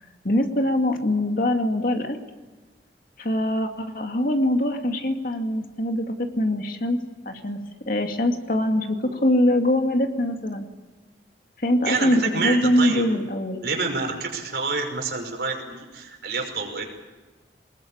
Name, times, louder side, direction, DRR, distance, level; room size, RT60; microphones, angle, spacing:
voice 1, 0.2-2.2 3.2-7.6 7.9-10.7 11.6-13.6, left 1 dB, 55° left, 5 dB, 2.3 m, -23 dB
voice 2, 11.9-13.1 13.6-16.8, right 4 dB, 65° right, 2 dB, 5.6 m, -28 dB
24.0 x 20.5 x 8.8 m, 1.3 s
head